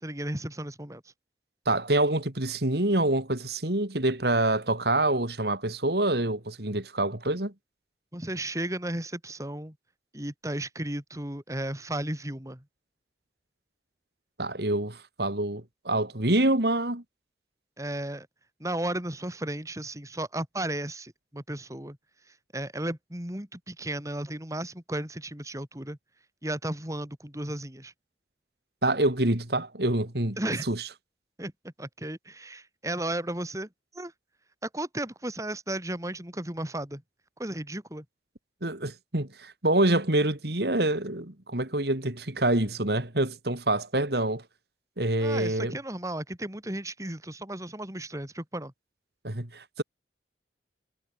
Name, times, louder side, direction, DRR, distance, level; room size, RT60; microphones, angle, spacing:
voice 1, 0.0-1.0 8.1-9.7 10.1-12.6 17.8-18.3 18.6-22.0 22.3-26.0 26.4-27.9 30.4-30.7 31.4-34.1 34.6-37.0 37.4-38.0 45.2-48.7, right 1 dB, 20° right, 3.3 m, -34 dB
voice 2, 1.7-7.5 14.4-17.0 28.8-30.4 30.7-30.8 38.6-44.4 45.0-45.7 49.2-49.8, right 1 dB, 60° right, 3.0 m, -26 dB
head